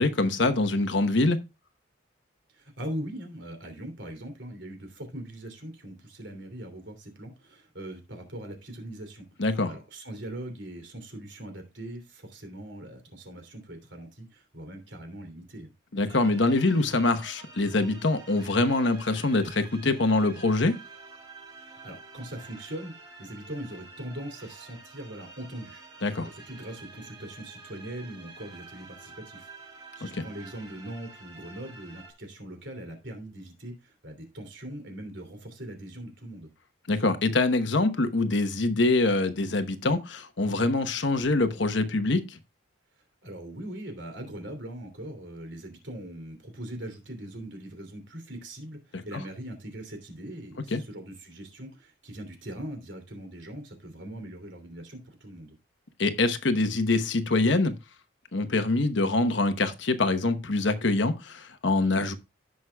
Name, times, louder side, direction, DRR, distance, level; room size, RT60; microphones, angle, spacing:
voice 1, 0.0-1.4 9.4-9.7 15.9-20.8 26.0-26.3 30.1-30.2 36.9-42.4 48.9-49.0 50.7-50.8 56.0-57.7 58.3-62.1, left 2 dB, 65° left, 1.0 m, -24 dB
voice 2, 2.5-9.2 9.6-15.7 21.6-22.9 23.2-25.8 26.2-29.5 30.0-36.5 43.2-55.6, right 1 dB, 65° right, 2.9 m, -41 dB
sound 1, 16.1-32.1, right 3 dB, 25° right, 4.6 m, -49 dB
16.0 x 6.3 x 2.3 m
head